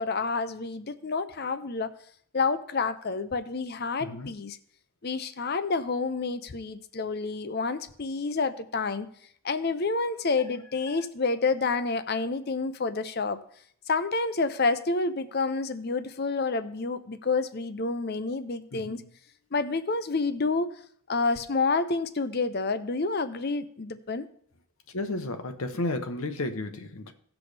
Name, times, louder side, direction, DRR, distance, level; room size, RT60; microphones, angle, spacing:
voice 1, 0.0-1.9 2.3-4.6 5.0-9.1 9.4-13.4 13.9-19.0 19.5-20.7 21.1-24.3, left 4 dB, 45° left, 0.6 m, -29 dB
voice 2, 4.0-4.3 10.9-11.0 18.7-19.0 24.9-27.1, left 2 dB, 70° left, 1.0 m, -33 dB
17.5 x 6.1 x 3.4 m
head